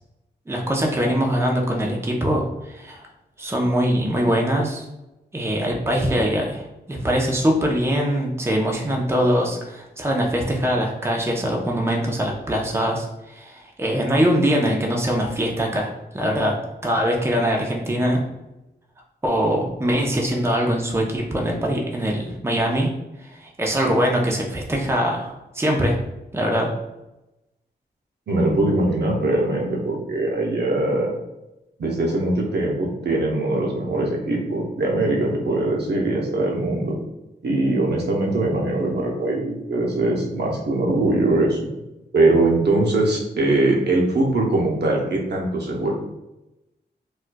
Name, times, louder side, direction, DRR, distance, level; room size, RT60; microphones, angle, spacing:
voice 1, 0.5-3.1 3.4-4.8 5.3-16.6 16.8-18.2 19.2-22.9 23.2-26.0 26.3-26.7, equal, 15° right, -1 dB, 0.7 m, -22 dB
voice 2, 28.3-31.1 31.8-37.0 37.4-41.7 42.1-45.9, right 2 dB, 65° right, -1 dB, 0.8 m, -21 dB
4.3 x 2.3 x 2.2 m, 0.94 s
cardioid pair, 65°, 18 cm